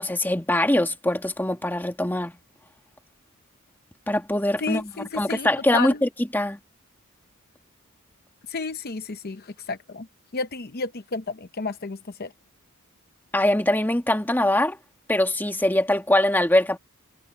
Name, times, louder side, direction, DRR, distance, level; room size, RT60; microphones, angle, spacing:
voice 1, 0.0-2.3 4.1-4.9 5.2-6.6 13.3-14.8 15.1-16.8, left 1 dB, 10° left, 1.5 m, -22 dB
voice 2, 4.6-6.0 8.5-10.1 10.3-12.3, left 4 dB, 45° left, 0.8 m, -32 dB
head